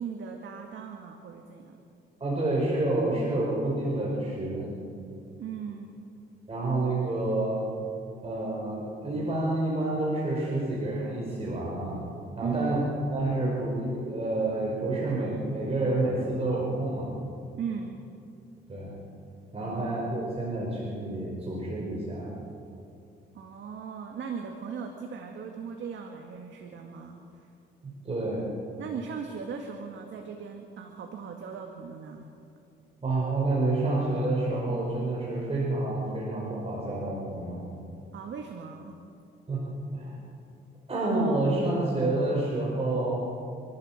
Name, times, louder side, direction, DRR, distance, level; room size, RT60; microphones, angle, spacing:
voice 1, 0.0-1.8 5.4-6.0 12.4-12.9 17.6-18.0 19.6-20.1 23.3-27.5 28.8-32.3 38.1-39.0, right 6 dB, 70° right, 3 dB, 2.0 m, -38 dB
voice 2, 2.2-4.7 6.5-7.6 8.2-12.0 12.4-12.8 13.1-17.1 18.7-18.9 19.5-22.3 28.0-28.5 33.0-37.6 39.5-39.6 39.9-40.2 40.9-43.2, right 2 dB, 30° right, -4 dB, 5.5 m, -28 dB
29.0 x 13.0 x 7.6 m, 2.5 s
cardioid pair, 90°, 20 cm